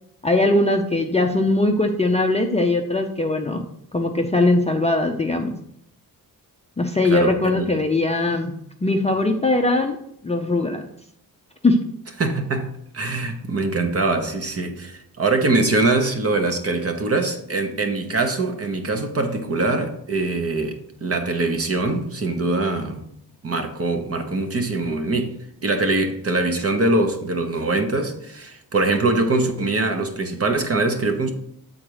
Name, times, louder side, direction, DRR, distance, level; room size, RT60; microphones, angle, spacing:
voice 1, 0.2-3.6 3.9-5.5 6.8-8.5 8.8-10.0 10.2-10.8 11.6-11.8, left 2 dB, 20° left, 0.4 m, -20 dB
voice 2, 7.0-7.7 12.2-12.7 12.9-23.0 23.4-25.3 25.6-31.3, right 2 dB, 40° right, 0.9 m, -23 dB
7.4 x 3.9 x 4.8 m
wide cardioid pair, 155°, 37 cm